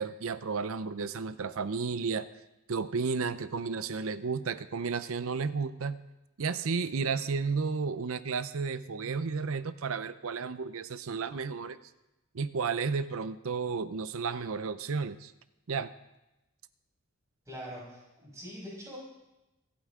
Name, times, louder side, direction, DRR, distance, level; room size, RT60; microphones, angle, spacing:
voice 1, 0.0-2.3 2.7-6.0 6.4-11.8 12.3-15.3 15.7-15.9, right 5 dB, 70° right, 13 dB, 0.6 m, -32 dB
voice 2, 17.5-19.0, equal, 15° right, -5 dB, 6.2 m, -43 dB
24.5 x 9.1 x 3.7 m, 0.95 s
head